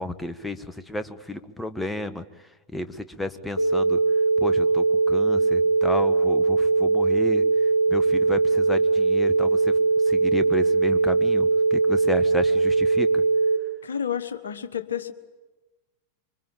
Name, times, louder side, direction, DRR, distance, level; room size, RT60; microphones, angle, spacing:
voice 1, 0.0-2.2 2.7-4.0 4.4-7.4 7.9-9.8 10.0-13.2, left 1 dB, 5° left, 1.4 m, -32 dB
sound 1, 3.6-13.6, right 4 dB, 85° left, 1.4 m, -21 dB
voice 2, 13.8-15.1, left 8 dB, 70° left, 1.4 m, -30 dB
26.0 x 24.0 x 8.9 m
figure-of-eight pair, 90°, 0 cm